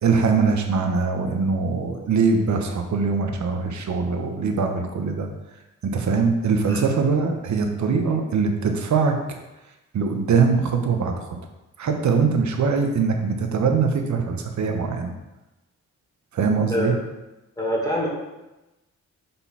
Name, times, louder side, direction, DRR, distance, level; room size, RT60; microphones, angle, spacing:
voice 1, 0.0-5.3 5.8-9.2 9.9-11.2 11.8-15.1 16.3-16.9, right 5 dB, 65° right, 4 dB, 1.0 m, -22 dB
voice 2, 16.7-17.0 17.6-18.1, equal, 10° left, -4 dB, 2.3 m, -25 dB
5.4 x 4.3 x 5.7 m, 1.0 s
cardioid pair, 75°, 30 cm